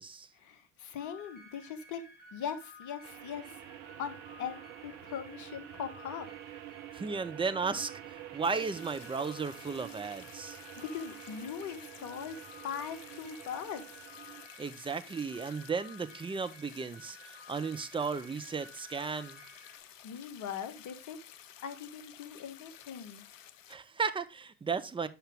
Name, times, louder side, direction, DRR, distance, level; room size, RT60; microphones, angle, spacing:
voice 1, 0.3-2.0 2.3-3.6 4.0-6.3 10.5-12.3 12.6-14.0 20.0-21.2 21.6-23.2, left 8 dB, 50° left, 1.4 m, -40 dB
sound 1, 1.0-19.8, left 1 dB, 25° left, 3.8 m, -54 dB
sound 2, 3.0-14.5, right 14 dB, 55° right, 0.9 m, -48 dB
voice 2, 6.9-10.6 14.6-19.4 23.7-25.1, right 5 dB, 15° right, 0.7 m, -35 dB
sound 3, 8.4-23.8, left 10 dB, 85° left, 0.6 m, -53 dB
8.3 x 5.7 x 3.4 m
hypercardioid pair, 70°, 38 cm